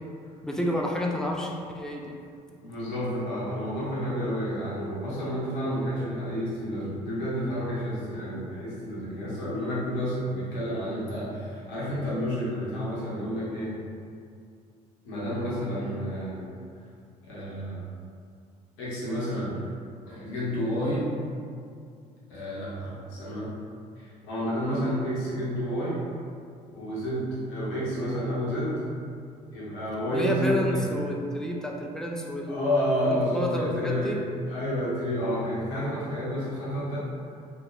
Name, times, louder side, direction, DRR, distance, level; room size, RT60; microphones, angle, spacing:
voice 1, 0.4-2.1 30.1-34.2, left 1 dB, 5° left, 0 dB, 0.3 m, -30 dB
voice 2, 2.6-13.8 15.0-16.5 17.2-17.8 18.8-19.5 20.1-21.1 22.3-23.5 24.0-26.0 26.7-28.8 29.5-30.9 32.5-34.2 34.5-37.1, equal, 65° left, -8 dB, 0.9 m, -30 dB
3.1 x 2.2 x 2.3 m, 2.3 s
figure-of-eight pair, 55°, 21 cm